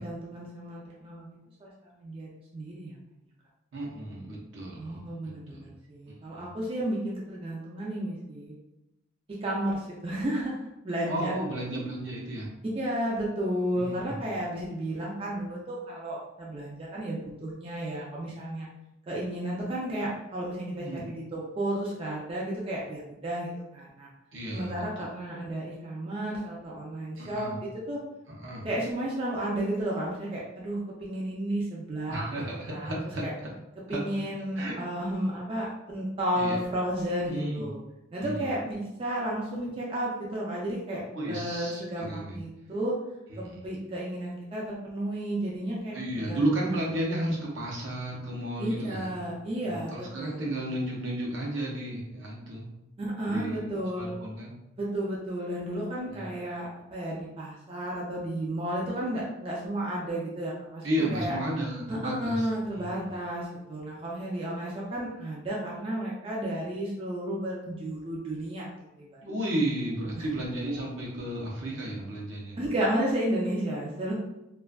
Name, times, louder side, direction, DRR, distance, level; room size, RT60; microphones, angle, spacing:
voice 1, 0.0-2.9 4.8-8.5 9.4-11.3 12.7-18.7 19.1-24.1 24.5-28.0 28.6-32.2 32.7-32.9 33.2-33.3 33.9-37.8 38.1-41.0 41.3-42.9 43.4-46.8 48.6-50.5 53.0-54.1 54.8-60.8 61.1-61.4 61.9-68.7 69.0-69.2 70.2-70.3 72.6-74.1, right 1 dB, 30° right, -5 dB, 0.3 m, -32 dB
voice 2, 3.7-5.7 6.1-6.5 11.1-12.5 13.8-14.2 20.8-21.0 24.3-24.8 27.2-27.5 28.3-28.7 32.1-33.3 33.9-34.0 34.5-34.8 36.4-36.6 37.3-37.7 38.2-38.5 41.1-42.4 43.3-43.6 45.9-49.3 49.6-52.7 53.2-54.6 56.1-56.3 60.8-62.5 62.7-63.1 69.2-72.6, right 1 dB, 70° right, -2 dB, 0.7 m, -33 dB
2.5 x 2.2 x 2.2 m, 0.93 s
head